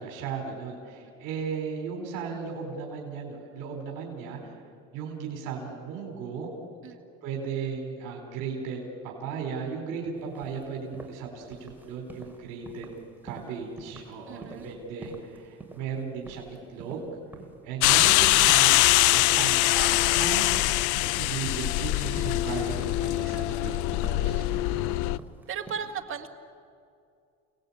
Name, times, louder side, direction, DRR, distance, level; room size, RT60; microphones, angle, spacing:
voice 1, 0.0-4.5 4.9-6.5 7.2-12.9 13.2-17.1 17.6-20.5 21.0-25.0, right 6 dB, 70° right, 1 dB, 4.4 m, -36 dB
sound 1, 10.2-25.7, right 3 dB, 5° right, 3.6 m, -50 dB
voice 2, 14.3-14.7 24.5-25.2 25.5-26.3, right 7 dB, 40° right, 5 dB, 2.1 m, -37 dB
sound 2, 17.8-25.2, left 18 dB, 65° left, 0.6 m, -23 dB
29.5 x 19.0 x 8.7 m, 2.4 s
cardioid pair, 120°, 33 cm